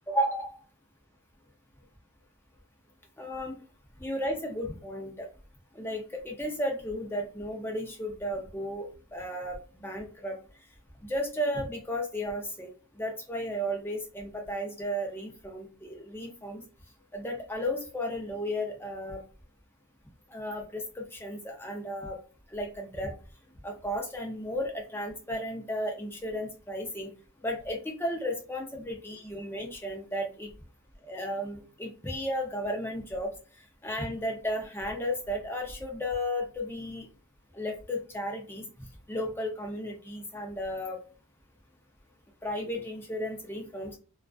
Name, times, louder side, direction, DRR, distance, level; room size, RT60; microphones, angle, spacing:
voice 1, 0.1-0.6 3.2-3.6 4.0-5.3 5.7-9.6 9.8-10.4 11.0-12.7 12.9-16.6 17.1-19.2 20.3-22.2 22.5-23.1 23.6-27.1 27.4-30.5 31.1-33.3 33.8-37.1 37.5-38.7 39.1-41.0 42.4-43.9, equal, 10° left, 1 dB, 0.5 m, -34 dB
2.4 x 2.3 x 2.3 m, 0.37 s
head